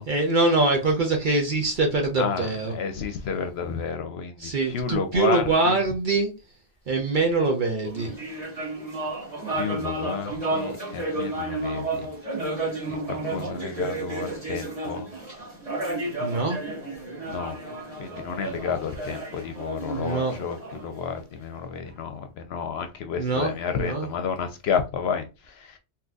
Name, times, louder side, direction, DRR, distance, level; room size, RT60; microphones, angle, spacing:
voice 1, 0.1-2.7 4.4-6.3 6.9-8.1 16.2-16.6 19.9-20.4 23.2-24.1, right 3 dB, 50° right, 0.8 m, -24 dB
voice 2, 2.2-5.8 9.5-12.1 13.1-15.1 17.2-17.6 18.0-25.8, left 6 dB, 70° left, 0.8 m, -31 dB
sound 1, 7.8-21.5, right 2 dB, 30° right, 1.8 m, -32 dB
3.8 x 2.8 x 2.3 m
omnidirectional pair, 1.2 m